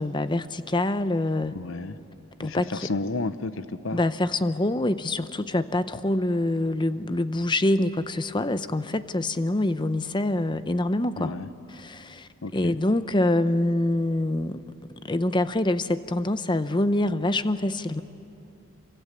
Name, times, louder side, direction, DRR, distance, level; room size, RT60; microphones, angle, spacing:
voice 1, 0.0-1.6 2.4-2.9 3.9-11.3 11.7-14.6 15.0-18.0, left 1 dB, 20° left, 12 dB, 0.7 m, -25 dB
voice 2, 1.5-2.0 2.4-4.0 11.2-11.5 12.4-12.8, left 3 dB, 65° left, 13 dB, 0.8 m, -32 dB
27.5 x 24.5 x 8.3 m, 2.8 s
head